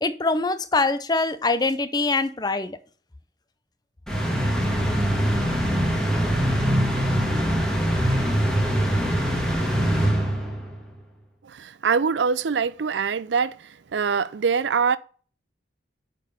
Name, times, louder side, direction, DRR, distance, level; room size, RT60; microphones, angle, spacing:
voice 1, 0.0-2.8, left 3 dB, 20° left, 0.6 m, -23 dB
sound 1, 4.1-10.8, equal, 5° left, 1.6 m, -23 dB
voice 2, 11.4-13.6 13.9-15.0, right 5 dB, 75° right, 0.5 m, -23 dB
6.5 x 5.4 x 6.8 m
head